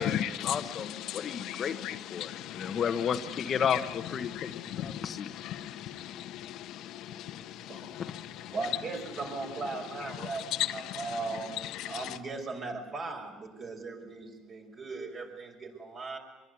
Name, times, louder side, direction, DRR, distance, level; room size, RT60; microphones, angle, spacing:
voice 1, 0.0-1.8 2.1-5.3, left 7 dB, 40° left, 1.2 m, -33 dB
voice 2, 1.1-2.8 4.3-5.0 5.4-7.4, left 12 dB, 65° left, 1.2 m, -37 dB
voice 3, 7.6-8.0 8.5-16.2, right 3 dB, 40° right, 6.1 m, -38 dB
24.0 x 22.5 x 9.6 m
cardioid pair, 130°, 0 cm